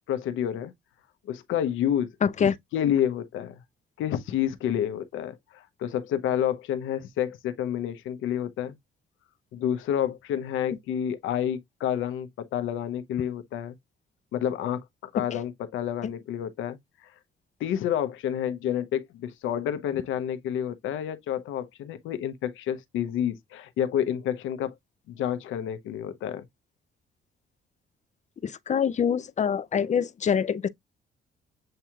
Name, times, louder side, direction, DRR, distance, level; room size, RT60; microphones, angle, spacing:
voice 1, 0.1-0.7 1.3-2.1 2.4-3.6 4.0-8.8 9.5-13.7 14.3-14.8 15.1-16.8 17.6-24.7 25.1-26.4, left 10 dB, 85° left, 0.8 m, -29 dB
voice 2, 28.4-30.7, left 7 dB, 35° left, 0.5 m, -25 dB
7.6 x 2.9 x 2.3 m
cardioid pair, 90°, 20 cm